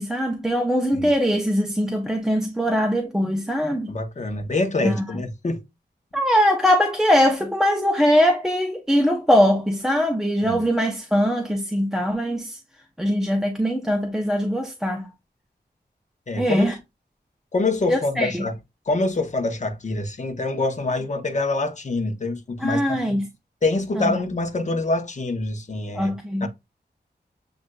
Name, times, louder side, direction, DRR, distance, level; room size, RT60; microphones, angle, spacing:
voice 1, 0.0-3.9 4.8-5.2 6.1-12.6 13.0-15.1 16.4-16.7 17.9-18.5 22.6-23.3 23.9-24.1 25.9-26.5, equal, 5° right, 0.7 m, -21 dB
voice 2, 3.9-5.6 10.5-10.6 16.3-16.7 17.5-18.5 18.9-23.2 23.6-26.1 26.4-26.5, left 2 dB, 40° left, 0.9 m, -25 dB
7.6 x 2.6 x 2.2 m
wide cardioid pair, 90°, 18 cm